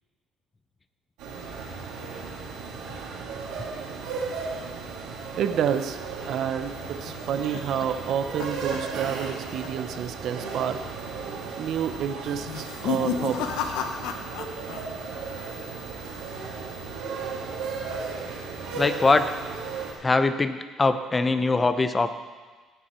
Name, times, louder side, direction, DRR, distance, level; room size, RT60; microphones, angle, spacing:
sound 1, 1.2-19.9, right 4 dB, 90° right, 2.3 m, -35 dB
voice 1, 5.4-10.8 11.6-13.7, right 8 dB, 65° right, 9 dB, 0.8 m, -29 dB
sound 2, 6.8-9.4 9.6-10.0 10.3-10.4 11.1-11.5 12.4-14.8 15.1-15.7, left 6 dB, 85° left, 0.9 m, -33 dB
voice 2, 18.8-19.4 20.0-22.2, left 3 dB, 25° left, 10 dB, 0.8 m, -22 dB
17.0 x 7.2 x 4.5 m, 1.4 s
cardioid pair, 90°, 0 cm